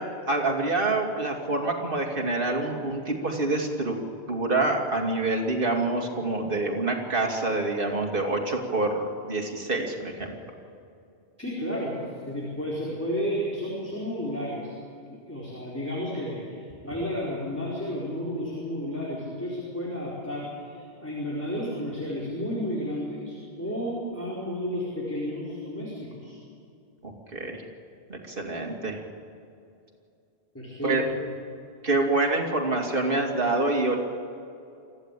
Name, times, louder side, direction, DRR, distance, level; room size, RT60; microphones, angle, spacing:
voice 1, 0.0-4.0 4.3-10.4 27.0-27.6 28.1-29.0 30.8-31.0 31.8-34.0, right 2 dB, 55° right, 1 dB, 2.8 m, -26 dB
voice 2, 11.4-14.7 15.1-26.4 30.5-31.3, equal, 15° left, -6 dB, 4.4 m, -32 dB
25.5 x 15.0 x 8.4 m, 2.6 s
omnidirectional pair, 1.1 m